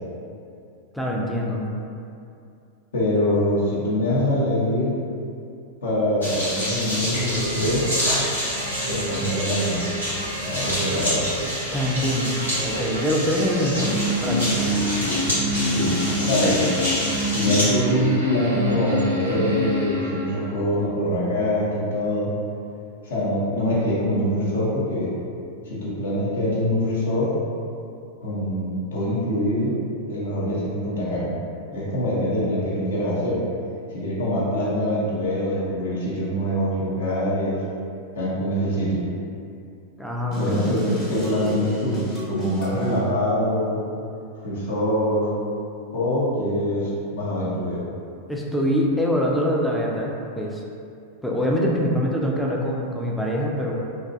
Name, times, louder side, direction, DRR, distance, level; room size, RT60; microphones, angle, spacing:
voice 1, 0.9-1.7 11.7-12.3 12.6-13.9 14.2-14.6 40.0-40.9 48.3-50.6 51.2-53.7, equal, ahead, -3 dB, 0.3 m, -24 dB
voice 2, 2.9-4.9 5.8-7.8 8.9-9.9 10.4-11.2 15.6-16.7 17.3-22.3 23.0-25.1 25.6-27.3 28.2-29.8 30.1-31.3 31.7-33.4 33.9-37.6 38.2-39.1 40.3-40.8 41.1-43.8 44.4-45.3 45.9-47.8, equal, 60° left, -6 dB, 0.6 m, -24 dB
sound 1, 6.2-17.6, equal, 90° left, 1.1 m, -28 dB
sound 2, 7.4-20.5, equal, 70° right, 0.4 m, -27 dB
sound 3, 40.3-42.9, equal, 30° left, 0.8 m, -31 dB
2.5 x 2.2 x 2.5 m, 2.6 s
figure-of-eight pair, 90°, 0 cm